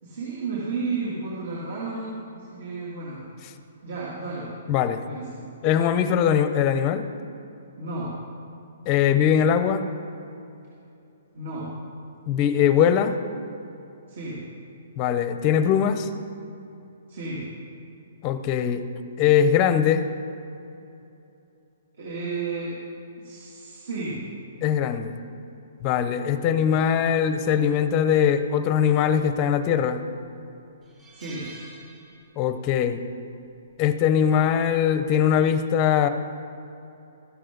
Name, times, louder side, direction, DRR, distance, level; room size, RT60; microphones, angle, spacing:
voice 1, 0.0-3.2 3.8-4.5 5.0-5.4 7.8-8.1 11.3-11.7 14.1-14.4 17.1-17.4 22.0-22.7 23.2-24.2 31.1-31.5, right 3 dB, 55° right, -6 dB, 2.7 m, -32 dB
voice 2, 4.7-5.0 5.6-7.0 8.9-9.8 12.3-13.2 15.0-16.1 18.2-18.8 19.2-20.1 24.6-25.1 25.8-30.0 32.4-33.0 33.8-36.1, left 8 dB, 25° left, 10 dB, 0.6 m, -21 dB
sound 1, 29.6-29.9 30.3-30.4 30.8-32.6 32.9-33.1 34.4-34.7, right 2 dB, 15° right, 2.0 m, -47 dB
14.0 x 12.0 x 3.9 m, 2.8 s
hypercardioid pair, 165°, 0 cm